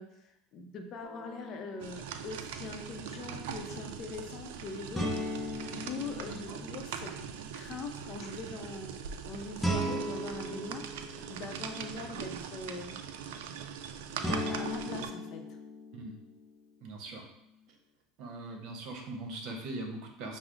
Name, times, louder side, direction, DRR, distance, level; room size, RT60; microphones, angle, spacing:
voice 1, 0.0-7.1 7.5-9.0 9.3-12.9 14.0-15.4, left 3 dB, 45° left, 5 dB, 0.6 m, -42 dB
sound 1, 1.0-2.0 5.0-7.1 9.6-11.8 14.2-16.4, equal, ahead, 0.7 m, -37 dB
sound 2, 1.8-15.1, right 7 dB, 85° right, 0.3 m, -41 dB
voice 2, 6.3-6.6 15.9-16.1 16.8-17.2 18.2-20.4, right 2 dB, 60° right, 2 dB, 0.9 m, -41 dB
6.0 x 2.0 x 3.8 m, 0.79 s
supercardioid pair, 120°, 0 cm